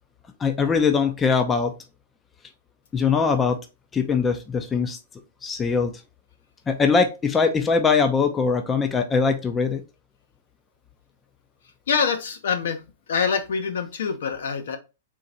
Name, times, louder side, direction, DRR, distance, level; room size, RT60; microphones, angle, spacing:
voice 1, 0.4-1.7 2.9-3.6 3.9-5.0 5.4-5.9 6.7-9.8, left 5 dB, 15° left, 6 dB, 0.5 m, -21 dB
voice 2, 11.9-12.8 13.1-14.8, left 6 dB, 75° left, 7 dB, 0.9 m, -25 dB
3.8 x 2.5 x 4.2 m, 0.28 s
hypercardioid pair, 150°, 0 cm